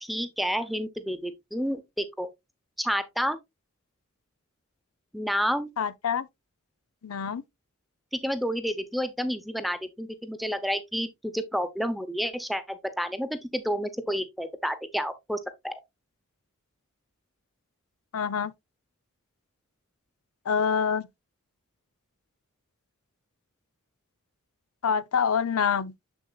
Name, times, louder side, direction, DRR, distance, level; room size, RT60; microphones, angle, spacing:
voice 1, 0.0-2.3 2.8-3.4 5.1-5.7 8.2-15.8, equal, ahead, 0.7 m, -30 dB
voice 2, 5.8-6.3 7.0-7.4 18.1-18.5 20.5-21.1 24.8-25.9, left 6 dB, 90° left, 0.6 m, -26 dB
7.0 x 7.0 x 2.3 m
head